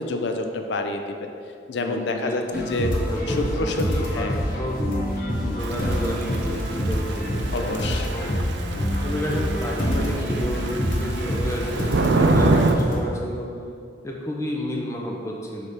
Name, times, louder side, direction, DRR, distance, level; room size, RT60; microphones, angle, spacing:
voice 1, 0.0-1.3 1.7-2.9 3.3-4.4 5.4-6.2 7.5-8.2, left 2 dB, 65° left, 5 dB, 0.5 m, -28 dB
voice 2, 1.8-4.3 4.6-4.8 5.5-8.4 8.9-13.5 14.0-15.7, equal, 15° left, -2 dB, 0.7 m, -31 dB
sound 1, 2.5-13.0, equal, 45° left, 1.1 m, -26 dB
Thunder / Rain, 5.6-12.8, right 3 dB, 70° right, 0.4 m, -26 dB
6.5 x 3.4 x 4.9 m, 2.4 s
head